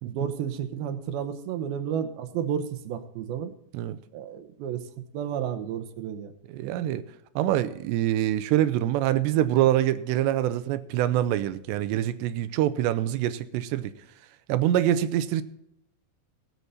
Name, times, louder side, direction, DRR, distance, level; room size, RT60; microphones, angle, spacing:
voice 1, 0.0-3.5 4.1-4.8 5.1-6.3, right 8 dB, 75° right, 2.5 m, -31 dB
voice 2, 6.5-7.0 7.4-13.9 14.5-15.4, right 12 dB, 90° right, 2.9 m, -25 dB
18.5 x 8.2 x 4.1 m
omnidirectional pair, 4.9 m